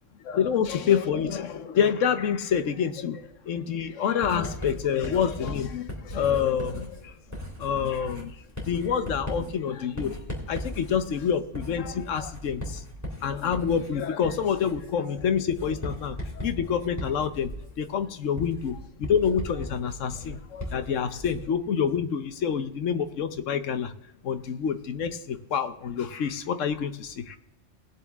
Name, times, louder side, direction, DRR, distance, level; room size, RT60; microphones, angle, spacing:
voice 1, 0.2-7.1 7.6-8.3 8.7-12.8 13.2-17.5 17.8-23.9 24.2-27.4, left 7 dB, 90° left, 10 dB, 1.2 m, -27 dB
Writing, 4.2-21.6, left 1 dB, 15° left, 3.0 m, -38 dB
19.5 x 7.2 x 3.5 m, 0.86 s
omnidirectional pair, 1.3 m